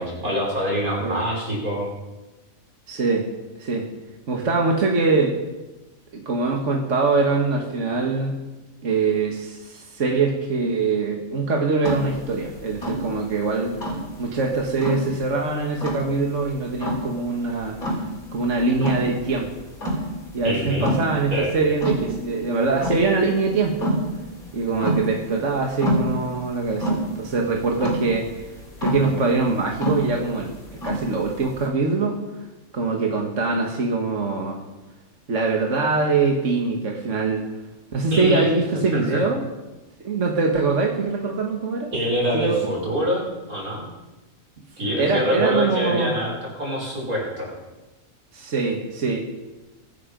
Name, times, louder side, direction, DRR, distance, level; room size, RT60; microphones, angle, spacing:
voice 1, 0.0-1.9 20.4-20.9 21.3-21.5 38.1-38.4 38.9-39.2 41.9-43.9 44.8-47.5, equal, 90° right, -3 dB, 6.1 m, -25 dB
voice 2, 2.9-3.3 3.6-3.9 4.3-5.4 6.1-8.4 8.8-13.8 14.2-17.8 18.3-19.5 20.3-23.9 24.5-28.4 28.8-30.5 30.8-32.2 32.7-34.6 35.3-37.5 37.9-39.4 40.0-41.9 42.3-42.6 45.0-46.1 48.3-49.2, right 3 dB, 60° right, 1 dB, 2.0 m, -23 dB
sound 1, 11.8-31.7, equal, 85° left, 4.5 m, -28 dB
23.5 x 9.9 x 5.3 m, 1.1 s
omnidirectional pair, 1.5 m